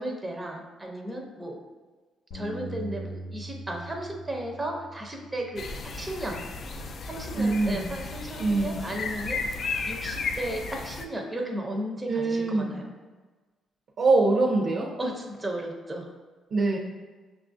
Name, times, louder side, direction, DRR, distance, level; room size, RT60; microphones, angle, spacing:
voice 1, 0.0-1.6 2.3-6.4 7.1-12.9 15.0-16.1, right 1 dB, 15° right, 1 dB, 0.5 m, -35 dB
Bass guitar, 2.3-8.6, right 1 dB, 80° left, 0.7 m, -43 dB
sound 1, 5.6-11.0, left 4 dB, 55° left, 0.3 m, -34 dB
voice 2, 7.3-7.9 8.4-8.8 12.1-12.7 14.0-14.9 16.5-16.8, right 3 dB, 60° right, -2 dB, 0.5 m, -23 dB
5.8 x 2.4 x 2.5 m, 1.3 s
cardioid pair, 90°, 0 cm